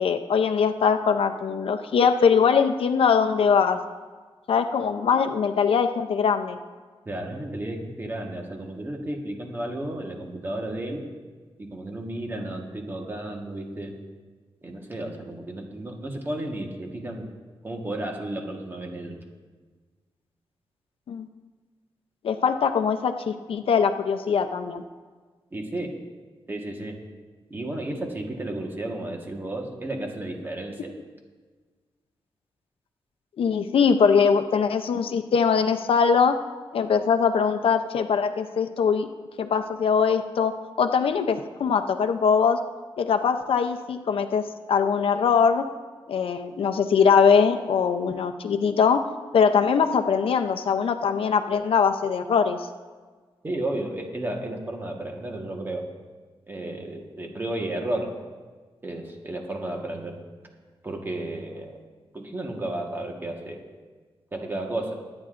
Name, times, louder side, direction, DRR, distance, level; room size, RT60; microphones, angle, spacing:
voice 1, 0.0-3.8 4.5-6.6 21.1-21.3 22.2-24.8 33.4-36.4 36.7-39.1 39.4-42.6 43.0-45.6 46.1-49.0 49.3-52.7, left 6 dB, 75° left, 8 dB, 0.6 m, -22 dB
voice 2, 7.0-11.0 11.6-13.9 14.6-17.3 17.6-19.2 25.5-26.0 26.5-27.0 27.5-30.9 53.4-55.9 56.5-58.2 58.8-60.2 60.8-61.8 62.1-63.6 64.3-65.0, right 1 dB, 20° right, 1 dB, 1.4 m, -33 dB
22.5 x 9.6 x 2.5 m, 1.4 s
wide cardioid pair, 180°, 9 cm